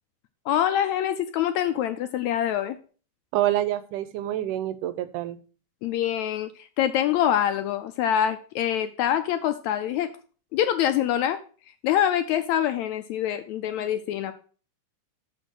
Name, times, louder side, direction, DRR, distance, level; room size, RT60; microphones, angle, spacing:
voice 1, 0.5-2.8 5.8-10.1 10.5-11.4 11.8-14.3, left 10 dB, 80° left, 9 dB, 1.7 m, -25 dB
voice 2, 3.3-5.4, right 13 dB, 85° right, 13 dB, 2.3 m, -27 dB
6.7 x 5.8 x 6.2 m, 0.39 s
omnidirectional pair, 3.7 m